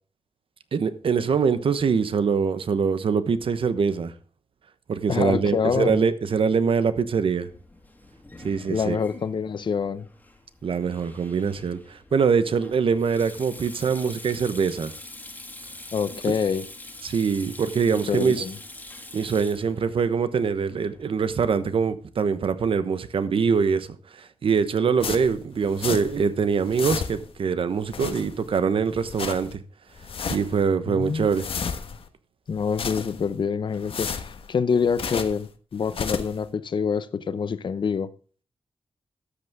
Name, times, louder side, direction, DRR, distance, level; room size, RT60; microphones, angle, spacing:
voice 1, 0.7-4.1 4.9-7.5 8.4-9.0 10.6-14.9 17.0-18.4 19.1-23.9 24.2-29.6 30.3-31.5, right 6 dB, 65° right, 1.1 m, -23 dB
voice 2, 5.1-6.0 8.7-10.1 15.9-16.7 17.9-18.6 30.9-31.3 32.5-38.1, left 6 dB, 55° left, 0.7 m, -26 dB
Sink (filling or washing), 7.4-21.1, left 2 dB, 15° left, 2.1 m, -44 dB
sound 1, 25.0-26.3 26.5-27.4 27.8-28.6 28.9-29.5 29.9-30.6 31.0-32.1 32.5-33.4 33.7-35.5 35.8-36.4, left 6 dB, 70° left, 1.2 m, -33 dB
13.0 x 8.1 x 3.6 m
wide cardioid pair, 110°, 10 cm